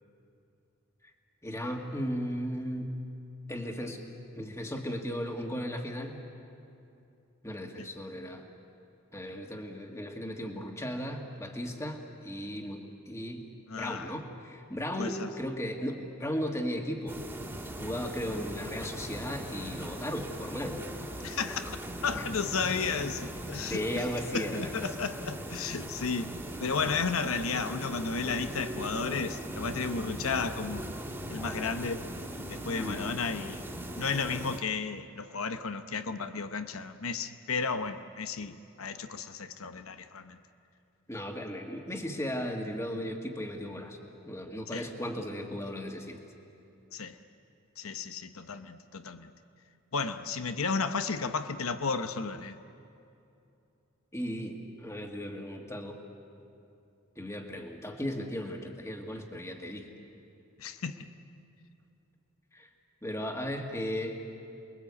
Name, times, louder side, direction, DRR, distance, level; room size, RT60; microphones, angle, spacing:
voice 1, 1.4-2.9 3.5-4.0 4.4-6.2 7.4-8.4 9.1-13.5 13.8-17.2 17.8-20.8 22.1-22.3 23.7-24.9 32.8-33.1 41.1-44.0 44.3-46.2 54.1-56.0 57.2-59.9 62.5-62.7 63.0-64.2, equal, 15° left, 2 dB, 2.0 m, -36 dB
voice 2, 13.7-14.2 15.0-15.3 21.2-21.8 22.0-23.8 24.3-30.8 31.3-32.1 32.5-33.6 33.9-40.4 44.7-44.9 46.9-47.2 47.8-49.3 49.9-52.6 60.6-61.1, left 5 dB, 90° left, 9 dB, 0.9 m, -33 dB
sound 1, 17.1-34.6, right 1 dB, 10° right, 2.2 m, -40 dB
29.0 x 21.5 x 8.4 m, 2.7 s
head